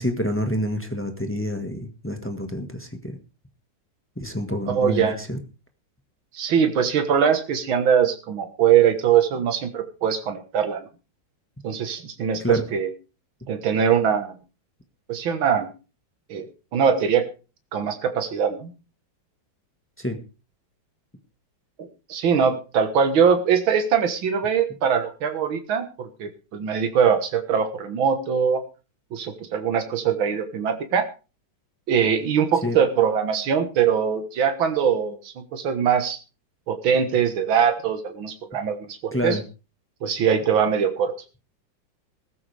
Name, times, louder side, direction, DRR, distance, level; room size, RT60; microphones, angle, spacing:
voice 1, 0.0-3.2 4.2-5.4 12.4-12.6 20.0-20.2 32.6-32.8 39.1-39.4, left 1 dB, 5° left, 5 dB, 1.4 m, -28 dB
voice 2, 4.7-5.2 6.3-10.8 11.6-12.9 13.5-14.4 15.1-15.7 16.3-16.5 16.7-17.2 17.7-18.7 21.8-28.6 29.1-31.1 31.9-36.2 36.7-39.4 40.0-41.1, right 7 dB, 80° right, 6 dB, 2.2 m, -22 dB
16.0 x 14.0 x 3.4 m, 0.33 s
omnidirectional pair, 2.1 m